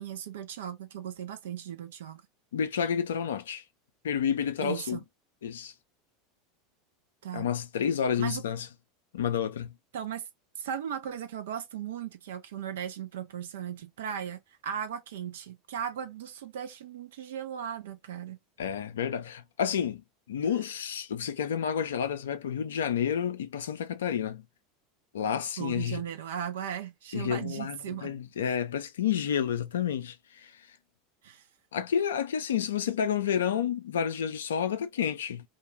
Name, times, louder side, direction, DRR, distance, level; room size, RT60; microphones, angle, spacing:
voice 1, 0.0-2.2 4.6-5.0 7.2-7.5 8.2-8.4 9.9-10.3 10.6-18.4 25.6-28.1 31.2-31.5, right 9 dB, 65° right, 0.4 m, -37 dB
voice 2, 2.5-3.6 4.0-5.0 5.4-5.7 7.3-8.7 9.1-9.7 18.6-20.0 20.3-24.4 25.1-26.0 27.1-30.5 31.7-35.4, left 8 dB, 65° left, 0.4 m, -30 dB
2.2 x 2.1 x 3.0 m
figure-of-eight pair, 80°, 0 cm